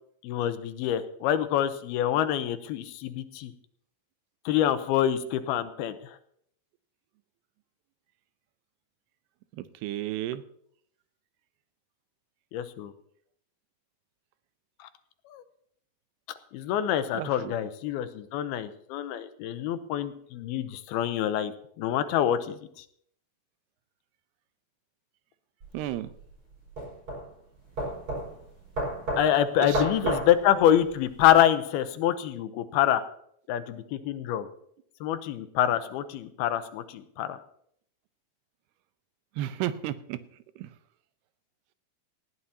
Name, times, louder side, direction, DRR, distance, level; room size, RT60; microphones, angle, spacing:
voice 1, 0.2-3.5 4.5-6.0 12.5-12.9 15.3-15.4 16.5-21.5 21.8-22.6 29.2-33.0 33.5-34.5 35.0-37.4, left 11 dB, 80° left, 10 dB, 2.7 m, -26 dB
voice 2, 9.6-10.4 17.1-17.5 21.4-21.5 25.7-26.1 29.6-30.2 39.4-40.2 40.6-40.7, right 13 dB, 90° right, 13 dB, 2.8 m, -33 dB
sound 1, 25.6-31.3, equal, 35° right, 6.1 m, -33 dB
19.0 x 14.0 x 2.8 m, 0.67 s
omnidirectional pair, 4.5 m